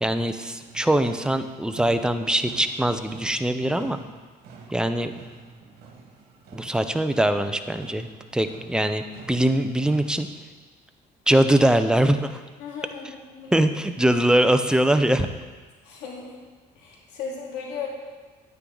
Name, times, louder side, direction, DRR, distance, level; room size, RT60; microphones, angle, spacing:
voice 1, 0.0-4.0 4.7-5.1 6.5-10.3 11.3-12.4 13.5-15.3, right 1 dB, 5° right, 8 dB, 0.6 m, -22 dB
sound 1, 0.6-10.3, right 4 dB, 70° right, 1.8 m, -47 dB
voice 2, 12.6-13.6 15.8-16.4 16.8-17.9, left 6 dB, 90° left, -2 dB, 2.4 m, -36 dB
9.8 x 9.1 x 3.9 m, 1.3 s
cardioid pair, 110°, 17 cm